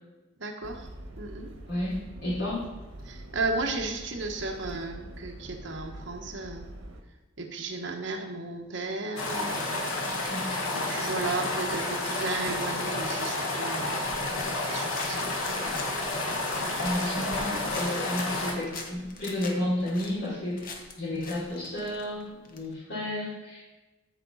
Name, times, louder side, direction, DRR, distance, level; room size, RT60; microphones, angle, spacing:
voice 1, 0.4-0.9 1.2-1.5 3.0-6.7 7.4-9.9 10.7-14.0 14.6-15.3 15.6-15.8 16.6-16.8, right 3 dB, 65° right, 3 dB, 1.2 m, -34 dB
sound 1, 0.6-7.0, right 1 dB, 85° right, 1.3 m, -44 dB
voice 2, 1.6-2.6 10.2-10.7 16.8-23.6, left 1 dB, 65° left, -11 dB, 3.3 m, -32 dB
sound 2, 9.2-18.5, left 2 dB, 85° left, 1.5 m, -30 dB
sound 3, 12.4-22.7, left 3 dB, 45° left, 1.0 m, -45 dB
14.0 x 4.8 x 4.1 m, 1.1 s
head